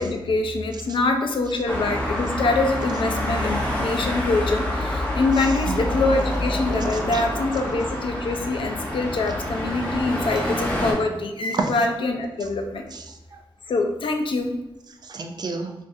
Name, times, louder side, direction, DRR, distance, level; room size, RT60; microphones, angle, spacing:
voice 1, 0.0-12.8 13.7-14.5, left 3 dB, 70° left, 4 dB, 0.4 m, -24 dB
Traffic noise roadway noise, 1.7-10.9, left 1 dB, 15° left, 0.7 m, -27 dB
voice 2, 5.3-5.8 6.9-7.2 11.5-11.7 12.9-13.4 15.0-15.7, right 4 dB, 50° right, 4 dB, 0.3 m, -30 dB
3.3 x 2.5 x 2.6 m, 0.97 s
wide cardioid pair, 155°, 9 cm